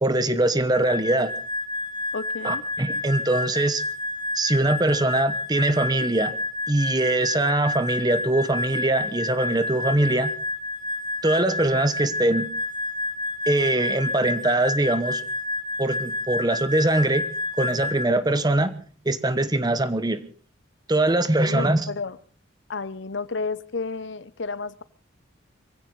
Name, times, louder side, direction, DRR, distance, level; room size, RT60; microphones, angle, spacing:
voice 1, 0.0-1.3 2.4-3.8 4.3-6.3 6.7-10.3 11.2-12.5 13.5-15.2 15.8-17.3 17.6-18.8 19.0-20.2 20.9-21.9, right 2 dB, 20° right, 12 dB, 1.0 m, -22 dB
sound 1, 0.7-18.1, left 2 dB, 20° left, 1.0 m, -30 dB
voice 2, 2.1-2.6 21.5-22.2 22.7-24.8, left 4 dB, 65° left, 17 dB, 0.8 m, -31 dB
23.0 x 16.0 x 4.0 m, 0.41 s
head